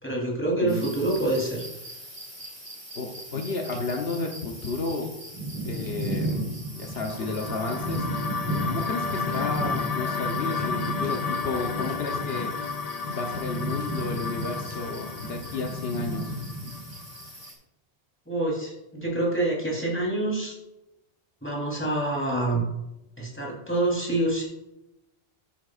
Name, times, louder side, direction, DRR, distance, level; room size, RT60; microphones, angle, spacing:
voice 1, 0.0-1.7 18.3-20.5 21.4-22.6 23.2-24.4, right 2 dB, 10° left, -3 dB, 3.6 m, -26 dB
sound 1, 0.7-17.5, right 1 dB, 15° right, 3.7 m, -35 dB
voice 2, 2.9-5.1 5.6-6.4 6.8-8.1 8.6-12.5 13.1-16.3, left 3 dB, 70° left, 2 dB, 1.2 m, -32 dB
sound 2, 6.9-17.2, left 5 dB, 55° left, 0.5 m, -32 dB
13.0 x 9.1 x 2.5 m, 0.93 s
omnidirectional pair, 1.1 m